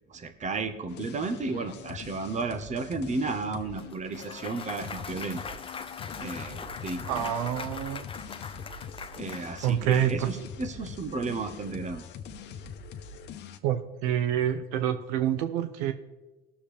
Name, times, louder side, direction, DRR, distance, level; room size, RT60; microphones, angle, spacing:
voice 1, 0.1-5.4 6.2-7.3 9.2-12.0, right 3 dB, 40° right, 8 dB, 1.3 m, -33 dB
sound 1, 0.9-13.6, left 6 dB, 65° left, 0.9 m, -43 dB
Clapping / Cheering / Applause, 3.8-10.0, left 5 dB, 30° left, 0.8 m, -41 dB
voice 2, 7.1-8.1 9.6-10.3 13.6-15.9, right 10 dB, 90° right, 9 dB, 0.6 m, -27 dB
18.0 x 7.0 x 3.5 m, 1.1 s
supercardioid pair, 75°, 19 cm